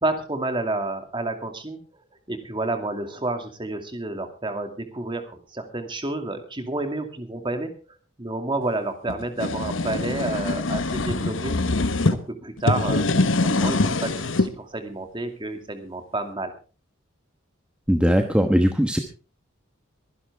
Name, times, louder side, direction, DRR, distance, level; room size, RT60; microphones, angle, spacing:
voice 1, 0.0-1.8 2.3-7.7 8.2-11.6 12.1-16.5, right 2 dB, 25° right, 6 dB, 2.4 m, -30 dB
cierra tapa caja madera, 9.1-12.2 12.6-14.5, left 2 dB, 75° left, 1.2 m, -23 dB
voice 2, 17.9-19.0, equal, 5° right, 5 dB, 1.1 m, -19 dB
23.5 x 11.0 x 3.5 m, 0.35 s
head